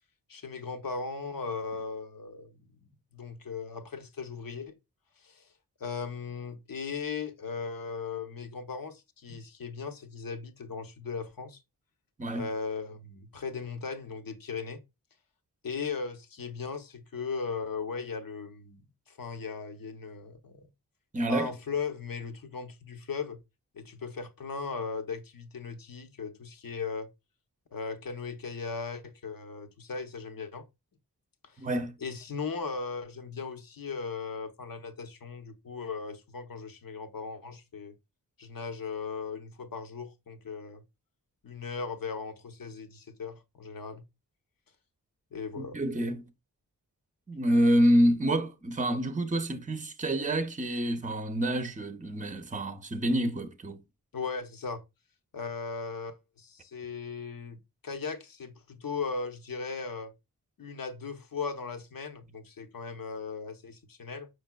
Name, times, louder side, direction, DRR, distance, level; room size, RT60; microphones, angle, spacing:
voice 1, 0.3-2.8 3.1-4.8 5.2-5.5 5.8-11.6 12.3-14.8 15.6-20.7 21.3-23.4 23.7-27.1 27.7-30.6 31.4-31.7 32.0-37.9 38.4-40.8 41.4-44.0 45.3-45.8 54.1-54.8 55.3-60.1 60.6-64.3, left 5 dB, 60° left, 0.8 m, -37 dB
voice 2, 21.1-21.5 31.6-31.9 45.6-46.2 47.3-53.8, right 1 dB, 20° right, 0.7 m, -27 dB
5.1 x 4.6 x 2.2 m
cardioid pair, 50°, 39 cm